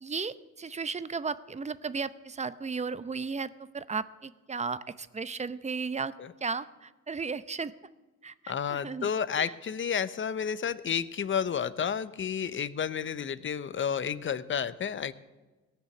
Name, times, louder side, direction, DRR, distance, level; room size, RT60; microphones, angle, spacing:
voice 1, 0.0-6.1 6.4-7.7 8.2-9.1 9.4-9.5, right 5 dB, 25° right, 15 dB, 0.7 m, -35 dB
voice 2, 8.5-15.1, left 7 dB, 40° left, 15 dB, 0.8 m, -31 dB
18.0 x 6.6 x 9.7 m, 1.2 s
cardioid pair, 90°, 30 cm